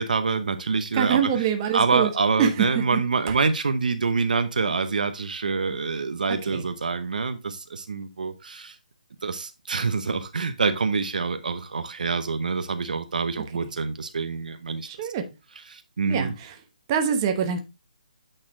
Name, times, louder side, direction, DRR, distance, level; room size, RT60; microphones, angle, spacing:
voice 1, 0.0-1.4 1.7-8.8 9.2-14.9 15.7-16.3, right 4 dB, 70° right, 0.8 m, -26 dB
voice 2, 0.9-2.1 2.4-3.0 3.3-3.4 6.3-6.6 13.6-13.7 14.8-15.2 16.1-16.5 16.9-17.6, right 8 dB, 25° right, 1.0 m, -25 dB
8.9 x 4.2 x 3.7 m
hypercardioid pair, 155°, 5 cm